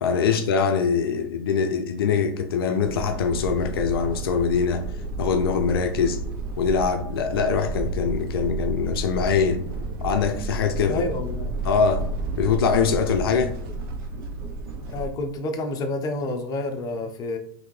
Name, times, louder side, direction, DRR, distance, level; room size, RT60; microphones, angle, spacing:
voice 1, 0.0-4.8 5.2-6.2 6.6-9.6 10.0-11.0 11.6-12.1 12.4-13.6, left 6 dB, 80° left, 0.4 m, -23 dB
sound 1, 2.8-15.1, right 2 dB, 65° right, 0.8 m, -31 dB
voice 2, 10.9-11.5 14.9-17.4, left 2 dB, 30° left, 0.6 m, -29 dB
3.4 x 2.6 x 3.2 m
hypercardioid pair, 110°, 12 cm